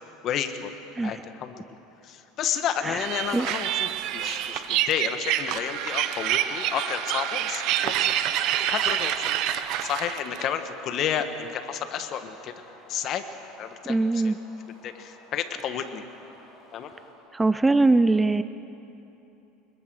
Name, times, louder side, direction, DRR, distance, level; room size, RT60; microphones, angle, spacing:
voice 1, 0.2-0.7 1.0-1.8 2.0-8.1 8.6-9.3 9.8-12.5 12.9-13.2 13.6-14.3 14.8-16.0 16.7-16.9, left 8 dB, 45° left, 8 dB, 1.6 m, -31 dB
sound 1, 2.3-17.1, left 1 dB, 20° left, 7.0 m, -48 dB
sound 2, 3.0-10.5, right 11 dB, 55° right, 1.0 m, -27 dB
voice 2, 13.9-14.4 17.3-18.4, right 3 dB, 10° right, 13 dB, 0.4 m, -21 dB
25.5 x 21.5 x 6.4 m, 3.0 s
supercardioid pair, 140°, 0 cm